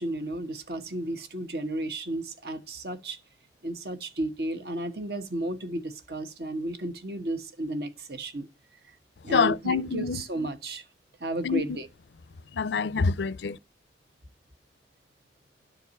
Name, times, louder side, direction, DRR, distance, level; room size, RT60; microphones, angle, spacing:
voice 1, 0.0-3.2 3.6-8.5 9.2-10.8 11.2-11.9, right 1 dB, 60° right, 1.2 m, -33 dB
voice 2, 9.3-10.2 11.4-11.6 12.5-13.6, left 5 dB, 80° left, 0.5 m, -26 dB
11.0 x 4.7 x 7.0 m
head